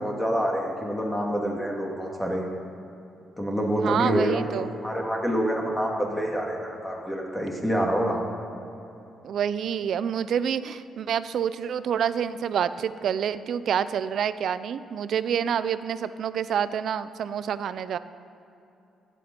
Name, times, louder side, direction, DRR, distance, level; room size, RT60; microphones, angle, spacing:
voice 1, 0.0-2.4 3.4-8.2, equal, 10° left, -1 dB, 2.2 m, -27 dB
voice 2, 3.8-4.7 9.2-18.0, right 8 dB, 65° right, 14 dB, 0.5 m, -27 dB
16.0 x 8.5 x 5.3 m, 2.9 s
cardioid pair, 90°, 0 cm